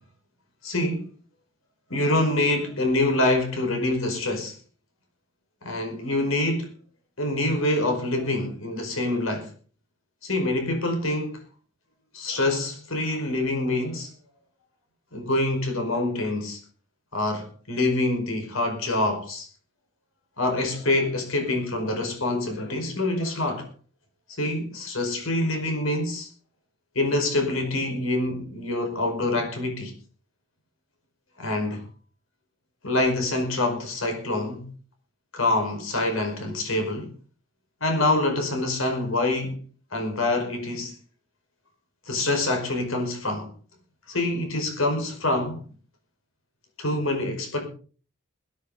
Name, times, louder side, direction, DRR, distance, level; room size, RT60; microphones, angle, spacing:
voice 1, 0.6-1.1 1.9-4.6 5.6-6.7 7.2-9.5 10.2-11.4 12.1-14.1 15.1-16.6 17.1-19.5 20.4-23.7 24.4-26.3 27.0-29.9 31.4-31.8 32.8-34.7 35.3-37.1 37.8-39.6 39.9-40.9 42.1-43.5 44.1-45.6 46.8-47.7, left 2 dB, 85° left, 5.2 m, -26 dB
21.0 x 10.5 x 4.0 m
head